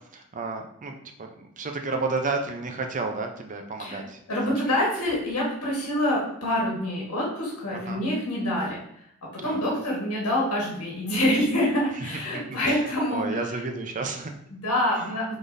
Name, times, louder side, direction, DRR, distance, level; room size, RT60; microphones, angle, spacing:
voice 1, 0.1-4.2 4.5-4.6 7.9-8.0 9.4-9.6 12.0-14.3 15.0-15.1, right 3 dB, 35° right, 4 dB, 0.5 m, -32 dB
voice 2, 4.3-8.8 9.3-13.4 14.5-15.4, left 1 dB, 80° left, -3 dB, 1.4 m, -26 dB
5.1 x 3.9 x 2.6 m, 0.73 s
head